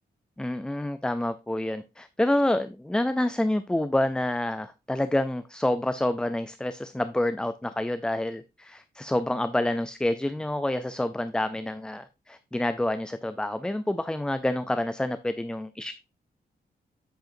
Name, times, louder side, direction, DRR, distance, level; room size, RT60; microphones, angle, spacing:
voice 1, 0.4-15.9, left 1 dB, 5° left, 0.4 m, -28 dB
9.0 x 7.7 x 2.6 m
wide cardioid pair, 175°, 16 cm